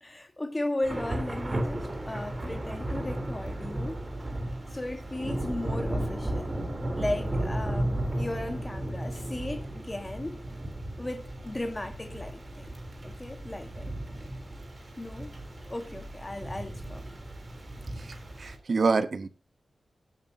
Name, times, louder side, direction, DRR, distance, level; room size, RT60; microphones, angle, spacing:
voice 1, 0.0-4.0 4.7-6.6 6.9-10.4 11.0-12.7 13.0-13.9 15.0-15.3 15.7-17.1, left 1 dB, 20° left, 1.5 m, -36 dB
Thunder / Rain, 0.8-18.5, right 1 dB, 25° right, 3.5 m, -35 dB
voice 2, 18.0-19.3, right 4 dB, 50° right, 1.1 m, -27 dB
16.0 x 11.5 x 2.8 m
wide cardioid pair, 150°, 0 cm